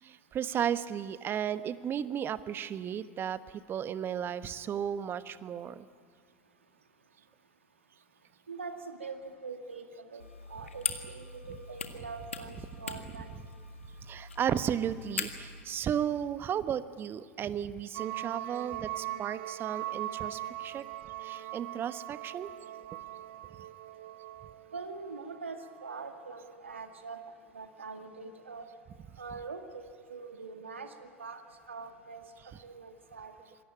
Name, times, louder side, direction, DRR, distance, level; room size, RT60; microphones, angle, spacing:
voice 1, 0.0-5.9 14.1-20.9 21.2-22.5, right 9 dB, 35° right, 13 dB, 1.1 m, -34 dB
voice 2, 8.5-10.2 10.5-13.3 24.7-27.2 27.5-28.7 29.2-31.4 31.7-33.3, right 4 dB, 85° right, 6 dB, 2.1 m, -43 dB
sound 1, 10.2-15.6, left 5 dB, 85° left, 1.8 m, -41 dB
sound 2, 17.9-26.1, right 14 dB, 65° right, 0.9 m, -41 dB
26.0 x 21.5 x 8.7 m, 2.2 s
figure-of-eight pair, 80°, 7 cm